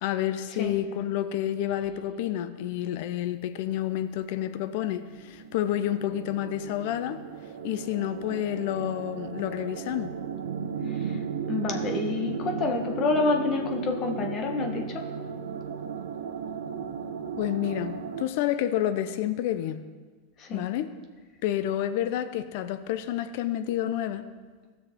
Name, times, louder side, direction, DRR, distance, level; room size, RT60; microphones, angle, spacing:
voice 1, 0.0-7.2 7.6-10.1 17.4-19.8 20.5-20.9 21.4-24.2, left 11 dB, 65° left, 12 dB, 0.6 m, -29 dB
sound 1, 4.8-4.9 5.1-18.2, right 6 dB, 90° right, 0.8 m, -35 dB
voice 2, 11.4-15.1 20.4-20.7, left 3 dB, 40° left, 3 dB, 1.3 m, -28 dB
15.5 x 6.3 x 3.7 m, 1.4 s
hypercardioid pair, 120°, 0 cm